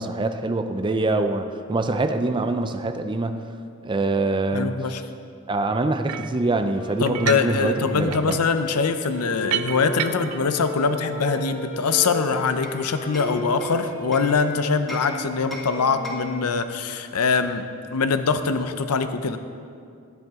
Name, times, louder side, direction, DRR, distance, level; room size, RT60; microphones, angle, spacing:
voice 1, 0.0-3.4 3.8-4.7 5.5-8.4, right 2 dB, 20° right, 7 dB, 0.4 m, -24 dB
voice 2, 4.5-5.0 7.0-19.4, left 5 dB, 90° left, 9 dB, 0.6 m, -23 dB
sound 1, 6.1-6.4 7.1-7.6 7.8-10.5, right 11 dB, 90° right, 0.4 m, -31 dB
sound 2, 6.7-16.7, left 1 dB, 50° left, 2.3 m, -36 dB
Hammer, 11.9-14.4 14.9-16.4, equal, ahead, 1.6 m, -41 dB
12.5 x 10.0 x 3.7 m, 2.4 s
head